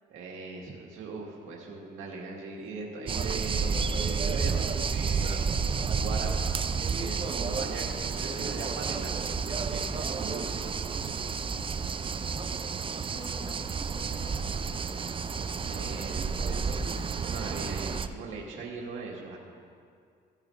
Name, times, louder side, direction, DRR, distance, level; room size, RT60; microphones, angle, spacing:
voice 1, 0.1-4.6 4.9-5.4 5.9-6.5 6.9-10.6 15.7-19.4, right 3 dB, 90° right, -2 dB, 1.8 m, -40 dB
sound 1, 3.1-18.1, right 5 dB, 25° right, 0.4 m, -31 dB
voice 2, 13.1-14.8, left 1 dB, 30° left, 1 dB, 1.6 m, -49 dB
15.5 x 10.5 x 2.5 m, 2.3 s
cardioid pair, 90°, 20 cm